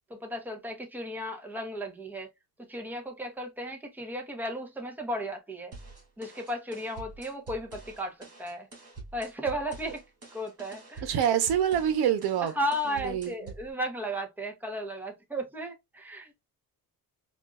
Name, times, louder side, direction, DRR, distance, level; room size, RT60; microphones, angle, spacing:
voice 1, 0.1-2.3 2.7-5.7 6.2-8.7 9.1-10.0 10.3-11.2 12.4-16.5, equal, 5° right, 0.9 m, -35 dB
sound 1, 5.7-13.7, right 3 dB, 40° right, 2.2 m, -47 dB
voice 2, 11.0-12.5 13.0-13.3, right 9 dB, 85° right, 0.9 m, -25 dB
4.4 x 2.5 x 2.4 m
cardioid pair, 130°, 37 cm